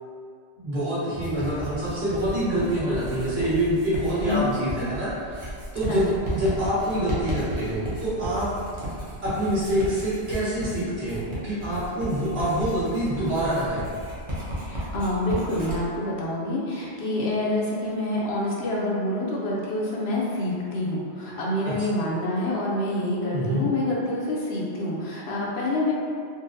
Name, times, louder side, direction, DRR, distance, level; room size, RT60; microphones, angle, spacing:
voice 1, 0.6-8.5 9.2-13.9 21.6-21.7 23.3-23.7, right 1 dB, 65° right, -11 dB, 1.4 m, -26 dB
Writing, 1.1-15.8, right 1 dB, 30° right, 0.6 m, -34 dB
voice 2, 14.6-25.9, left 1 dB, 70° left, -4 dB, 0.8 m, -27 dB
3.8 x 2.0 x 2.6 m, 2.2 s
omnidirectional pair, 1.2 m